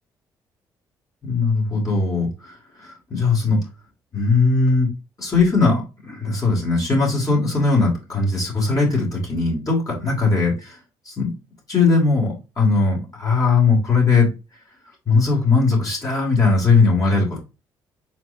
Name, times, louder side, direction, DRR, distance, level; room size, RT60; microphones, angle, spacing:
voice 1, 1.2-3.6 4.1-4.9 5.2-10.8 11.1-11.3 11.7-14.3 15.1-17.4, left 4 dB, 40° left, -3 dB, 2.5 m, -19 dB
4.5 x 4.0 x 2.7 m, 0.29 s
supercardioid pair, 70°, 9 cm